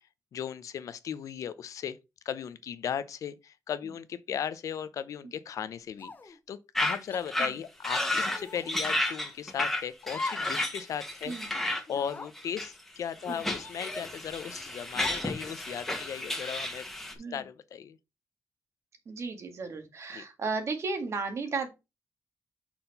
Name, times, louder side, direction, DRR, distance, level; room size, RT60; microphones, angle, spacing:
voice 1, 0.3-2.0 2.2-11.3 11.9-18.0 20.1-20.2, left 8 dB, 80° left, 0.7 m, -37 dB
sound 1, 6.0-6.4 7.1-7.3 8.3-8.7 10.1-10.6 10.9-11.0 11.9-12.3 13.2-14.1 15.0-15.4, left 3 dB, 35° left, 0.9 m, -41 dB
sound 2, 6.7-7.0 7.3-7.5 7.8-8.4 8.7-11.8 12.4-12.8 13.3-17.1, left 1 dB, 5° left, 1.7 m, -32 dB
voice 2, 19.1-21.7, right 4 dB, 60° right, 1.9 m, -34 dB
5.9 x 4.4 x 5.4 m
wide cardioid pair, 115°, 6 cm